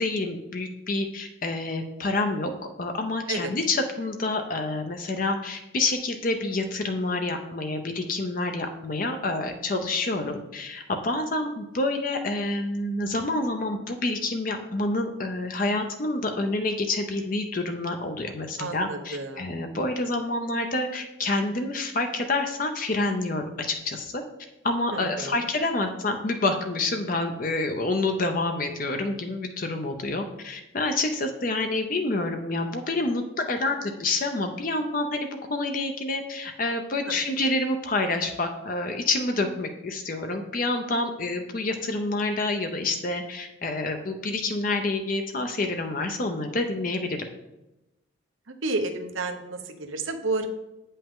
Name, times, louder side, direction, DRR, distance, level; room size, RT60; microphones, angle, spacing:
voice 1, 0.0-2.5 2.8-24.2 24.6-33.2 33.5-47.2, left 2 dB, 45° left, 5 dB, 0.6 m, -28 dB
voice 2, 18.6-19.5 24.9-25.4 37.1-37.2 48.6-50.5, right 3 dB, 85° right, 6 dB, 0.9 m, -31 dB
8.7 x 5.5 x 3.7 m, 0.95 s
head